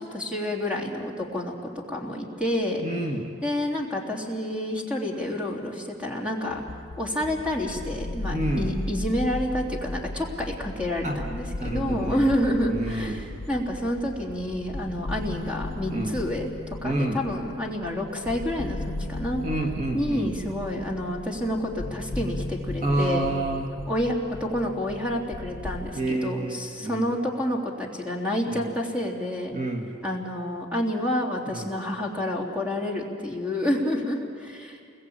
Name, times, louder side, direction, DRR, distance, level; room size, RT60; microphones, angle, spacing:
voice 1, 0.0-1.5 1.9-2.8 3.4-6.6 7.0-16.5 16.8-19.4 19.9-23.3 23.9-29.5 30.0-34.8, left 1 dB, 5° right, -1 dB, 3.1 m, -29 dB
voice 2, 2.8-3.3 8.3-8.7 11.0-11.2 11.6-12.3 12.7-13.4 15.9-16.2 16.8-17.2 19.4-20.3 22.8-23.7 25.9-27.0 28.5-28.7 29.5-29.9 31.5-31.7, right 2 dB, 35° right, 1 dB, 1.8 m, -29 dB
sound 1, 6.5-25.9, left 2 dB, 50° left, 0.6 m, -36 dB
sound 2, 7.2-16.1, left 1 dB, 60° right, 5.0 m, -47 dB
28.5 x 21.5 x 8.8 m, 2.3 s
head